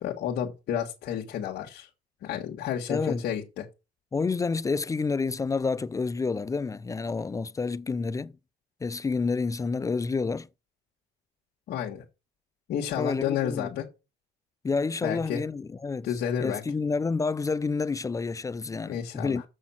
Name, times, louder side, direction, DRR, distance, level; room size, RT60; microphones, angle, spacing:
voice 1, 0.0-1.9 2.2-3.7 11.7-12.0 12.7-13.9 15.0-15.4 16.0-16.6 18.9-19.4, left 9 dB, 70° left, 1.7 m, -31 dB
voice 2, 2.9-3.2 4.1-8.3 8.8-10.5 13.0-13.7 14.6-16.1 16.4-19.4, left 4 dB, 20° left, 0.4 m, -29 dB
7.1 x 6.4 x 5.8 m
cardioid pair, 110°, 17 cm